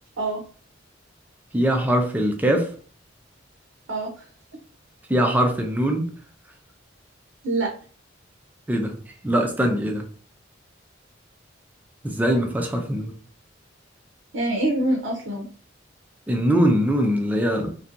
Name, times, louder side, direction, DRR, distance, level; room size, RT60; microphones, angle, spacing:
voice 1, 1.5-2.7 5.1-6.1 8.7-9.0 9.2-10.0 12.0-13.1 16.3-17.7, equal, 10° right, 3 dB, 0.4 m, -22 dB
voice 2, 3.9-4.3 7.4-7.7 14.3-15.5, right 2 dB, 85° right, 0 dB, 0.6 m, -25 dB
2.6 x 2.2 x 2.5 m, 0.43 s
head